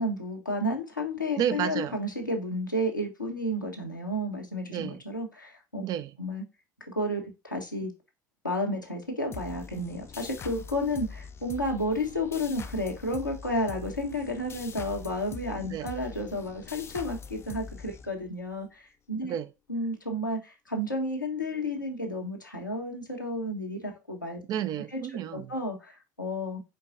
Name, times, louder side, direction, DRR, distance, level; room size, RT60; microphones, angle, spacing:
voice 1, 0.0-5.8 6.2-6.4 6.9-7.9 8.4-19.4 19.7-24.4 24.9-25.0 25.3-26.6, left 1 dB, 90° left, 1.1 m, -32 dB
voice 2, 1.4-2.0 4.7-5.0 5.8-6.1 15.6-15.9 19.2-19.5 24.5-25.5, right 10 dB, 40° right, 0.6 m, -31 dB
sound 1, 9.3-18.5, left 5 dB, 25° left, 0.5 m, -43 dB
4.6 x 4.5 x 2.5 m
figure-of-eight pair, 70°, 10 cm